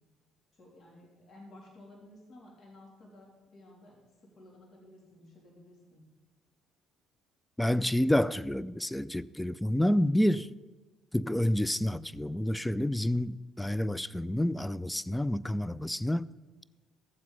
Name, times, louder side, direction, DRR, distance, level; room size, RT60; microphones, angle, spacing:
voice 1, 0.5-4.0 4.2-6.0, left 1 dB, 50° left, 3.2 m, -54 dB
voice 2, 7.6-10.5 11.1-16.3, left 1 dB, 5° left, 0.4 m, -29 dB
14.0 x 7.6 x 5.4 m
hypercardioid pair, 55°, 0 cm